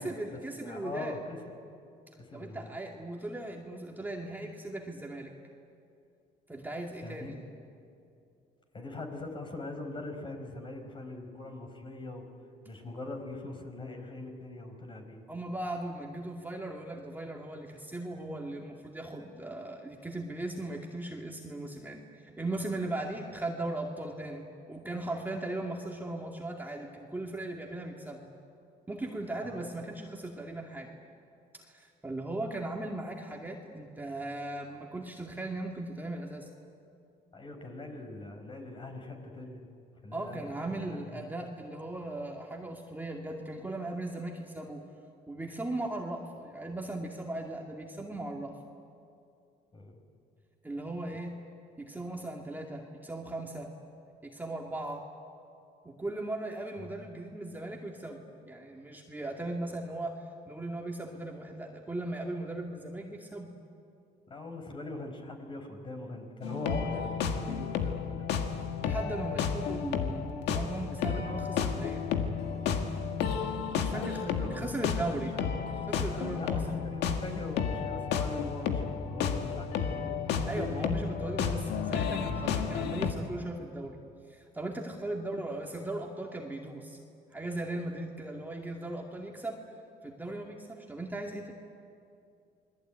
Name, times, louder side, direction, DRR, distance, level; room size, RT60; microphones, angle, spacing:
voice 1, 0.0-1.2 2.3-5.3 6.5-7.4 15.3-28.3 28.9-30.9 31.6-36.5 40.1-44.8 45.3-48.6 50.6-51.3 51.8-53.7 54.2-55.0 55.8-60.2 60.5-63.5 68.8-72.0 73.7-75.4 75.9-76.6 80.5-84.0 84.3-87.0 87.3-89.6 90.0-91.5, right 2 dB, 10° right, 0 dB, 2.4 m, -38 dB
voice 2, 0.6-1.4 2.2-2.8 7.0-7.3 8.7-12.3 12.6-15.2 29.4-29.7 37.3-39.6 40.0-41.3 49.7-50.0 56.8-56.9 64.3-68.3 73.9-75.6 76.0-80.5 80.7-81.0, left 2 dB, 30° left, 4 dB, 4.8 m, -42 dB
sound 1, 66.4-83.1, left 6 dB, 85° left, 2.0 m, -32 dB
28.0 x 21.0 x 9.1 m, 2.5 s
cardioid pair, 110°, 17 cm